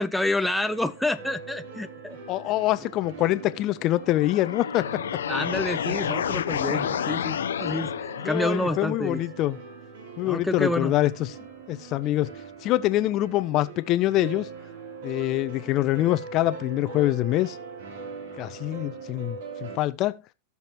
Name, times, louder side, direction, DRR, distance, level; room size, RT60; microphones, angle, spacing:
voice 1, 0.0-2.2 5.3-9.2 10.2-10.9, left 1 dB, 5° left, 0.7 m, -28 dB
sound 1, 0.7-19.8, right 4 dB, 55° right, 3.2 m, -42 dB
voice 2, 2.3-5.0 8.2-9.6 10.2-11.3 11.7-12.3 12.6-14.5 15.0-17.6 18.4-20.2, left 15 dB, 35° left, 1.0 m, -25 dB
sound 2, 4.0-9.0, left 8 dB, 65° left, 1.1 m, -30 dB
17.0 x 7.2 x 3.0 m
figure-of-eight pair, 90°, 0 cm